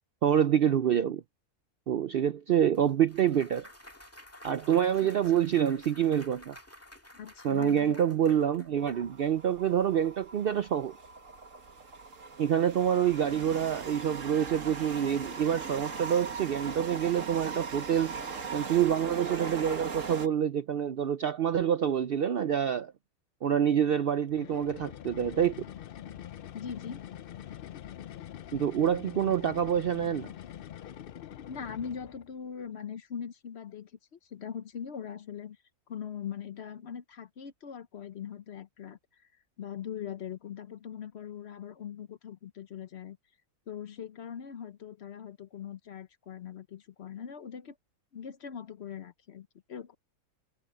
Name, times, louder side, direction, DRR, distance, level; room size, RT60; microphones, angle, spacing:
voice 1, 0.2-1.2 1.9-3.7 4.4-6.6 7.4-10.9 12.4-18.1 18.5-22.9 23.4-25.5 28.5-30.3, right 9 dB, 80° right, 0.5 m, -27 dB
Clapping / Cheering / Applause, 2.7-9.0, left 1 dB, 10° left, 1.7 m, -52 dB
voice 2, 7.1-8.0 26.5-27.0 31.5-35.6 35.9-39.3 39.6-43.2 43.7-47.8 48.1-50.0, left 8 dB, 55° left, 0.9 m, -41 dB
sound 1, 8.8-20.3, right 5 dB, 55° right, 2.0 m, -39 dB
sound 2, 24.3-32.3, left 10 dB, 80° left, 0.5 m, -44 dB
omnidirectional pair, 1.6 m